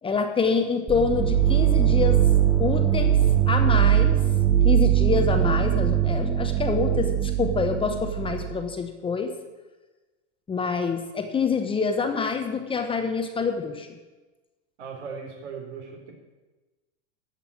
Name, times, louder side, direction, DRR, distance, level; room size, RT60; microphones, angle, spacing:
voice 1, 0.0-2.2 2.6-3.2 3.5-4.2 4.6-9.3 10.5-13.9, left 5 dB, 15° left, 6 dB, 1.0 m, -26 dB
sound 1, 0.9-8.6, right 10 dB, 10° right, 1.0 m, -21 dB
voice 2, 14.8-16.1, right 5 dB, 75° right, 0 dB, 4.2 m, -38 dB
13.5 x 5.8 x 8.5 m, 1.2 s
hypercardioid pair, 130°, 35 cm